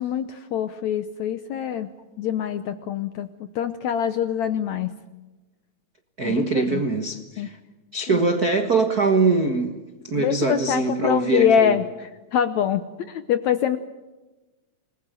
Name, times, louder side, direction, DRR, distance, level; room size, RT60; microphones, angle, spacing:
voice 1, 0.0-1.9 2.2-3.3 3.6-4.9 6.2-6.8 7.4-7.5 8.1-8.2 10.2-13.8, left 9 dB, 70° left, 11 dB, 1.7 m, -24 dB
voice 2, 6.2-7.6 7.9-11.7, right 3 dB, 55° right, 6 dB, 1.0 m, -23 dB
28.0 x 20.5 x 7.8 m, 1.1 s
omnidirectional pair, 4.2 m